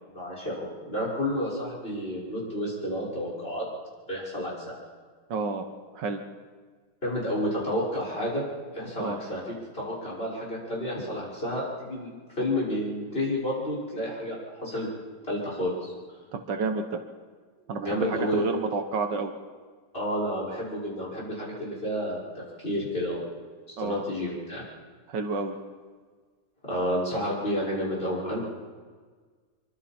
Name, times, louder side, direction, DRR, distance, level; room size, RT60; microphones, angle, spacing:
voice 1, 0.1-3.7 4.1-4.8 7.0-8.4 8.7-14.9 15.3-15.9 17.8-18.4 19.9-23.2 23.8-24.6 26.6-28.4, equal, 30° left, -5 dB, 6.1 m, -30 dB
voice 2, 5.3-5.7 5.9-6.2 9.0-9.2 16.3-17.0 17.7-19.3 23.8-24.0 25.1-25.6, right 4 dB, 75° right, 6 dB, 1.9 m, -30 dB
25.0 x 24.0 x 4.4 m, 1.5 s
omnidirectional pair, 1.9 m